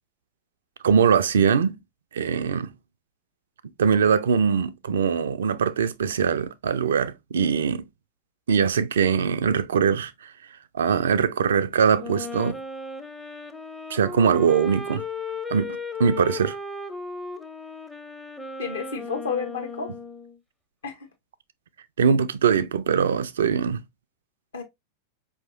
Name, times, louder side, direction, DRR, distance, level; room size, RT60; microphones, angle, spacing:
voice 1, 0.8-1.8 2.1-2.7 3.8-7.8 8.5-10.1 10.8-12.6 13.9-15.0 15.5-16.6 22.0-23.8, right 6 dB, 65° right, 0.3 m, -22 dB
Wind instrument woodwind instrument, 11.9-20.4, left 3 dB, 5° left, 0.5 m, -36 dB
voice 2, 18.6-19.9 20.8-21.1 24.5-24.6, left 6 dB, 65° left, 1.0 m, -31 dB
4.7 x 2.8 x 2.5 m
figure-of-eight pair, 90°, 0 cm